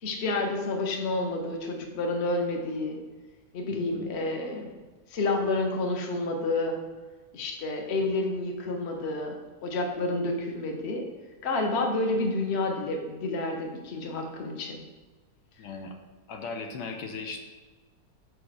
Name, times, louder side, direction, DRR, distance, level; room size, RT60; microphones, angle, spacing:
voice 1, 0.0-3.0 3.5-4.7 5.1-6.8 7.3-9.4 9.6-11.0 11.4-14.8, left 2 dB, 45° left, 2 dB, 1.1 m, -29 dB
voice 2, 3.7-4.1 15.6-16.0 16.3-17.4, left 4 dB, 80° left, 3 dB, 1.4 m, -38 dB
5.3 x 4.9 x 6.1 m, 1.3 s
omnidirectional pair, 1.9 m